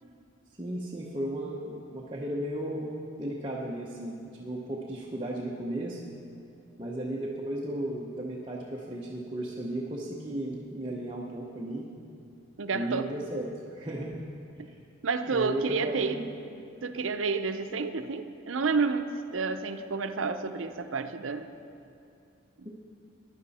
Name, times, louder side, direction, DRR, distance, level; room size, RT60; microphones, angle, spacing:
voice 1, 0.6-6.0 6.8-11.9 12.7-14.2 14.7-14.8 15.3-16.3 22.6-22.7, right 1 dB, 25° right, -4 dB, 0.9 m, -35 dB
voice 2, 12.6-13.1 15.0-16.2 16.8-21.5 22.6-22.7, right 4 dB, 80° right, 9 dB, 0.6 m, -30 dB
15.5 x 10.5 x 4.2 m, 2.6 s
head